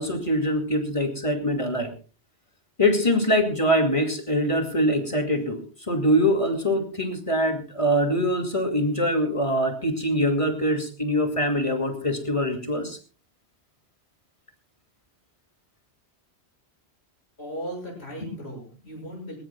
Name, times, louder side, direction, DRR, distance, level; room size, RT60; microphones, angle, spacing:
voice 1, 0.0-1.9 2.8-13.0, equal, 30° left, 5 dB, 2.4 m, -23 dB
voice 2, 17.4-19.4, equal, 70° left, 0 dB, 7.0 m, -36 dB
20.5 x 18.5 x 2.3 m, 0.36 s
omnidirectional pair, 1.1 m